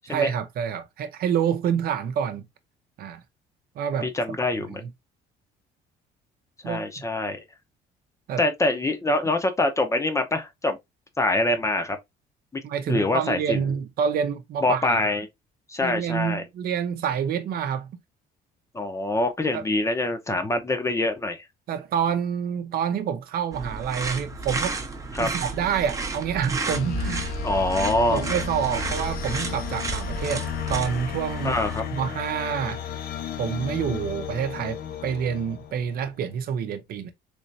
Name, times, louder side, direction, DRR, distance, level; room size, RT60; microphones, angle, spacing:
voice 1, 0.1-2.5 3.0-3.2 3.8-4.4 4.7-4.9 6.6-7.0 8.3-8.4 12.6-15.1 15.8-18.0 19.5-19.6 21.7-24.8 25.2-27.4 28.1-31.6 31.9-32.8 33.4-37.1, right 8 dB, 65° right, 0.7 m, -27 dB
voice 2, 4.0-4.8 6.6-7.4 8.4-10.8 11.2-12.0 12.5-12.6 12.9-13.6 14.6-15.3 15.7-16.4 18.7-21.4 25.1-25.3 27.4-28.2 31.4-31.8, left 2 dB, 15° left, 0.7 m, -25 dB
sound 1, 23.5-31.8, right 3 dB, 20° right, 0.7 m, -32 dB
sound 2, 26.7-36.1, left 9 dB, 60° left, 0.6 m, -34 dB
3.3 x 3.0 x 2.6 m
cardioid pair, 110°, 17 cm